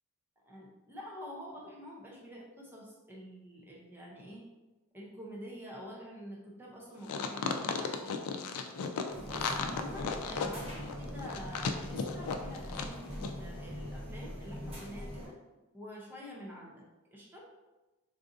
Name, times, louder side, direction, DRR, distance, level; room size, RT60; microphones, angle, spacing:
voice 1, 0.4-4.4 4.9-8.5 9.0-15.4 15.7-16.8 17.1-17.5, equal, 10° right, -3 dB, 0.5 m, -47 dB
sound 1, 7.0-12.9 13.2-13.3, left 5 dB, 85° left, 0.3 m, -35 dB
sound 2, 9.1-15.3, equal, 25° right, 0.9 m, -42 dB
3.8 x 2.5 x 2.5 m, 1.1 s
head